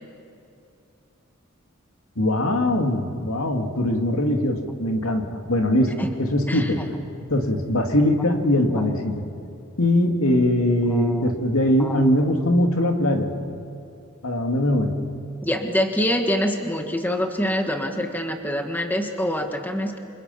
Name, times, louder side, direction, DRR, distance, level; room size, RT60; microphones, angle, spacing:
voice 1, 2.2-6.8 7.3-9.2 9.8-13.3 14.2-15.0, left 1 dB, 80° left, 3 dB, 2.5 m, -21 dB
voice 2, 10.9-11.3 11.8-12.1 15.4-20.0, equal, 10° left, 4 dB, 1.5 m, -25 dB
28.0 x 27.5 x 5.8 m, 2.6 s
head